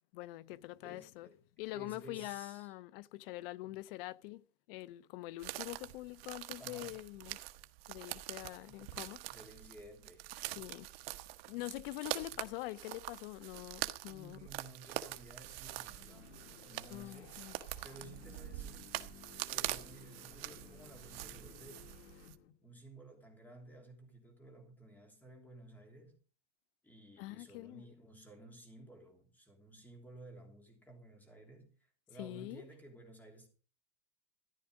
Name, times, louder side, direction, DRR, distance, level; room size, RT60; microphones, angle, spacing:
voice 1, 0.0-1.3 1.6-4.4 4.7-7.4 7.9-9.2 10.6-10.9 11.5-14.4 16.9-17.6 27.2-27.8 32.2-32.6, left 18 dB, 55° left, 0.7 m, -44 dB
voice 2, 0.8-1.4 1.7-2.7 3.6-3.8 6.6-7.0 8.6-10.6 12.1-12.5 14.0-16.4 16.6-17.4 17.8-18.9 19.5-21.9 22.6-26.2 26.8-33.5, right 1 dB, 5° left, 3.1 m, -55 dB
sound 1, 5.4-22.3, right 17 dB, 60° right, 1.1 m, -44 dB
sound 2, 14.9-22.7, left 10 dB, 85° left, 1.8 m, -58 dB
14.0 x 11.0 x 5.0 m
supercardioid pair, 165°, 34 cm